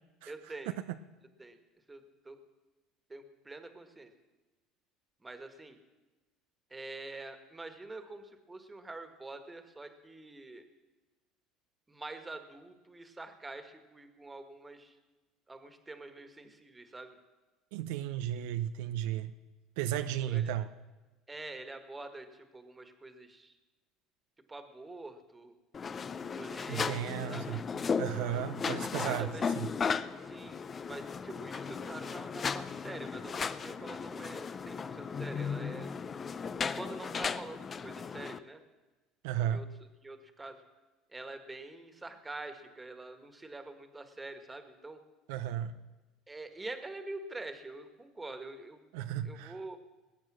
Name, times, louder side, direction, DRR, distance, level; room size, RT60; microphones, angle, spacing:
voice 1, 0.3-0.7 1.4-1.6 1.9-2.4 3.1-4.1 5.2-5.8 6.7-10.7 11.9-14.9 15.5-17.2 20.2-20.5 21.3-23.6 24.5-25.6 26.3-27.4 29.0-29.5 30.2-35.9 36.7-38.6 39.4-39.7 40.0-40.6 41.1-45.0 46.3-48.8 49.2-49.8, right 2 dB, 15° right, 8 dB, 1.7 m, -46 dB
voice 2, 17.7-19.3 19.8-20.7 26.7-27.6 28.0-29.3 29.6-29.7 39.2-39.6 45.3-45.7 48.9-49.5, right 11 dB, 80° right, 10 dB, 0.6 m, -34 dB
sound 1, 25.7-38.4, left 5 dB, 30° left, 0.6 m, -36 dB
20.0 x 8.5 x 6.3 m, 1.2 s
supercardioid pair, 95°, 0 cm